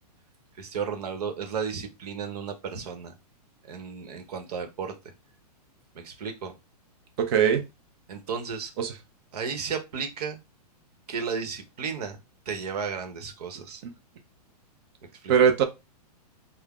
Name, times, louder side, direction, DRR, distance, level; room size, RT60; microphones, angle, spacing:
voice 1, 0.6-3.1 3.6-5.0 5.9-6.5 8.1-8.7 9.3-10.4 11.1-12.2 12.5-13.8 15.0-15.3, right 6 dB, 70° right, 1.1 m, -33 dB
voice 2, 7.2-7.6 8.8-8.9 15.3-15.6, right 7 dB, 40° right, 0.8 m, -20 dB
3.5 x 2.1 x 3.6 m
hypercardioid pair, 155°, 21 cm